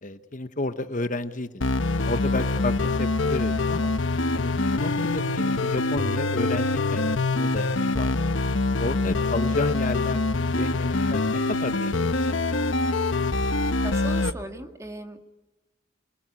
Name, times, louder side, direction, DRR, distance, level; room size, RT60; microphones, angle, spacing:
voice 1, 0.0-1.6 2.0-3.9 4.3-7.7 7.9-8.2 8.8-12.6, left 2 dB, 40° left, 10 dB, 1.0 m, -32 dB
sound 1, 1.6-14.3, left 2 dB, 80° left, 1.1 m, -25 dB
voice 2, 4.8-5.1 13.8-15.3, right 1 dB, 15° right, 6 dB, 1.9 m, -38 dB
28.5 x 20.5 x 9.9 m, 1.0 s
head